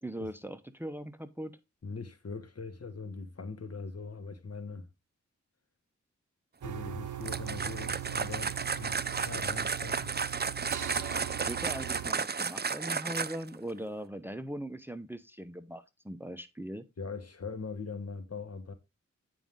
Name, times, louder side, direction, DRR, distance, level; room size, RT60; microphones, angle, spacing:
voice 1, 0.0-1.5 11.5-16.8, right 1 dB, 5° right, 0.9 m, -40 dB
voice 2, 1.8-4.9 6.6-10.1 17.0-18.7, left 4 dB, 55° left, 1.5 m, -41 dB
sound 1, 6.6-12.1, right 11 dB, 85° right, 0.6 m, -40 dB
sound 2, 7.2-13.6, right 5 dB, 35° right, 0.6 m, -33 dB
9.1 x 5.2 x 3.7 m
cardioid pair, 50°, 30 cm